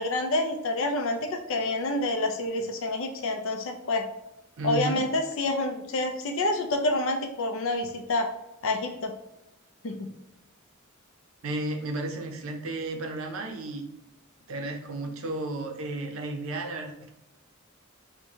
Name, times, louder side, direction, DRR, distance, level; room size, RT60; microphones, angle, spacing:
voice 1, 0.0-4.1 4.6-8.3 8.6-9.1 9.8-10.1, left 2 dB, 65° left, 6 dB, 0.5 m, -28 dB
voice 2, 4.6-5.0 11.4-13.8 14.5-17.1, right 2 dB, 65° right, 4 dB, 0.6 m, -33 dB
4.5 x 2.2 x 2.7 m, 0.93 s
head